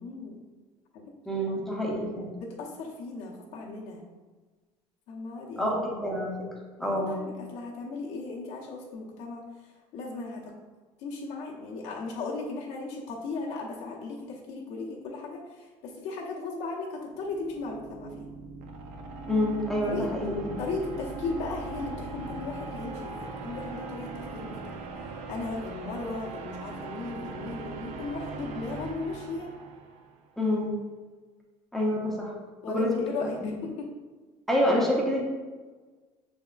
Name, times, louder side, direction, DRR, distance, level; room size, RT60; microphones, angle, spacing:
voice 1, 0.0-0.4 0.9-1.0 1.5-1.6 2.4-4.0 5.1-5.8 6.8-10.5 11.0-18.3 19.8-20.1 20.6-24.8 25.3-29.5 32.6-33.9, left 3 dB, 80° left, -4 dB, 0.9 m, -36 dB
voice 2, 1.3-2.3 5.6-6.3 6.8-7.2 19.3-20.6 30.4-30.7 31.7-32.3 32.7-32.9 33.2-33.6 34.5-35.2, left 1 dB, ahead, -3 dB, 0.7 m, -27 dB
sound 1, 17.0-30.1, right 3 dB, 70° right, 0.5 m, -40 dB
6.1 x 3.5 x 2.4 m, 1.4 s
cardioid pair, 155°, 12 cm